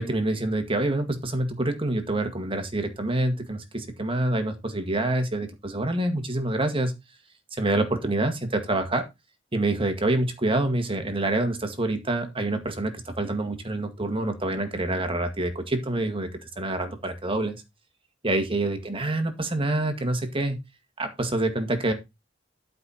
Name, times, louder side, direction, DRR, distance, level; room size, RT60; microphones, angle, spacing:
voice 1, 0.0-6.9 7.5-9.1 9.5-16.3 16.6-17.6 18.2-20.6 21.0-21.9, right 2 dB, 30° right, 7 dB, 1.9 m, -26 dB
11.5 x 5.4 x 4.3 m, 0.23 s
head